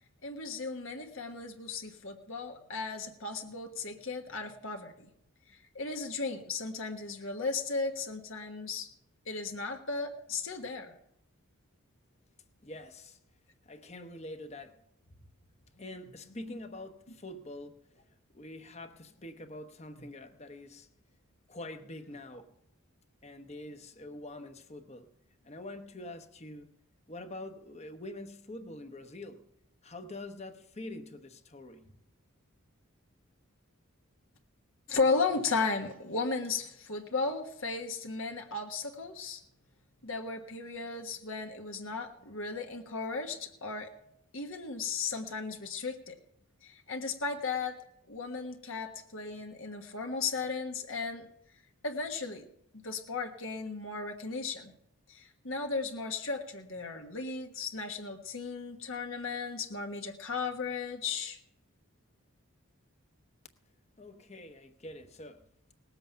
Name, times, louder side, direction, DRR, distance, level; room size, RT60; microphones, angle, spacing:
voice 1, 0.2-5.1 5.7-8.9 9.2-10.9 34.9-39.4 40.0-43.9 44.3-46.1 46.6-47.8 48.1-51.3 51.8-52.5 52.8-54.7 55.1-61.4, left 4 dB, 65° left, 1.4 m, -35 dB
voice 2, 12.6-13.2 13.6-14.8 15.1-15.3 15.6-17.8 18.3-20.9 21.5-22.5 23.2-25.1 25.4-26.7 27.1-29.5 29.8-32.0 64.0-65.5, left 1 dB, 30° left, 1.0 m, -45 dB
19.0 x 8.0 x 5.7 m
head